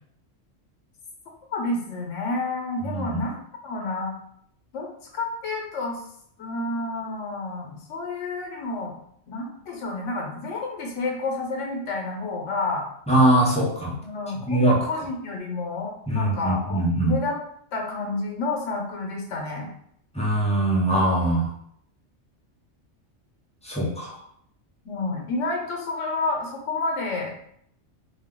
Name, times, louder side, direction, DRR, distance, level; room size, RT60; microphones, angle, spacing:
voice 1, 1.5-3.4 3.6-4.1 4.7-4.9 5.1-6.0 6.4-9.0 9.3-12.9 14.0-14.6 14.9-17.4 17.7-19.7 24.8-27.3, left 2 dB, 90° left, 0 dB, 1.0 m, -29 dB
voice 2, 13.1-13.9 14.4-14.8 16.1-17.1 20.1-21.5 23.6-24.2, right 1 dB, 10° left, -5 dB, 0.5 m, -22 dB
2.7 x 2.2 x 3.5 m, 0.69 s
omnidirectional pair, 1.2 m